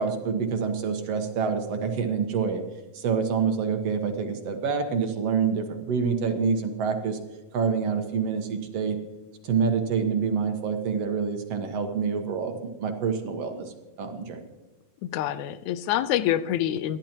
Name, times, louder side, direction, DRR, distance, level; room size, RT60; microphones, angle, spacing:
voice 1, 0.0-2.6 2.9-7.2 7.5-9.0 9.4-14.5, right 6 dB, 60° right, 5 dB, 2.2 m, -27 dB
voice 2, 15.0-17.0, left 11 dB, 85° left, 14 dB, 2.1 m, -26 dB
28.0 x 11.5 x 3.0 m, 1.1 s
omnidirectional pair, 3.4 m